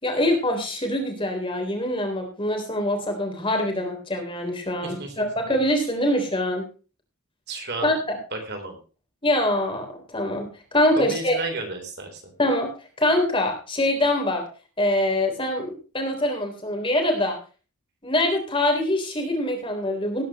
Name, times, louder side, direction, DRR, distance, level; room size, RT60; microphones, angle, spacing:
voice 1, 0.0-6.7 7.8-8.2 9.2-11.4 12.4-12.7 13.0-14.4 14.8-17.4 18.0-20.2, left 1 dB, 25° left, 3 dB, 3.7 m, -24 dB
voice 2, 4.8-5.3 7.5-7.9 8.3-8.8 11.0-12.3, right 2 dB, 50° right, 5 dB, 3.7 m, -32 dB
18.5 x 10.0 x 3.1 m, 0.35 s
head